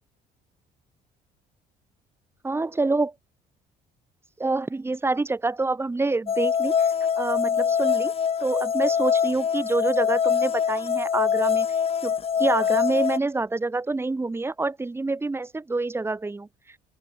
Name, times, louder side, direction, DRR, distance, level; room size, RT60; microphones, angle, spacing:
voice 1, 2.4-3.1 4.4-6.9 7.2-8.1 8.4-11.7 12.0-16.5, right 3 dB, 15° right, 1.4 m, -27 dB
sound 1, 6.3-13.2, left 7 dB, 35° left, 1.2 m, -24 dB
open air
cardioid pair, 110°, 17 cm